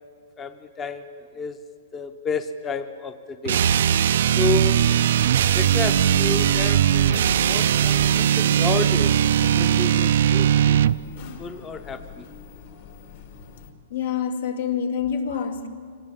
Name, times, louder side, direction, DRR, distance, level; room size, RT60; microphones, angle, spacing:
voice 1, 0.4-1.1 1.3-1.6 1.9-3.6 4.4-4.8 5.5-9.1 9.4-12.3, left 4 dB, 20° left, 9 dB, 0.8 m, -31 dB
sound 1, 3.5-11.0, right 9 dB, 70° right, 0.5 m, -19 dB
sound 2, 4.7-13.7, left 8 dB, 60° left, 3.2 m, -41 dB
voice 2, 13.9-15.7, left 7 dB, 75° left, 5 dB, 2.4 m, -26 dB
25.0 x 19.0 x 7.4 m, 2.2 s
hypercardioid pair, 150°, 0 cm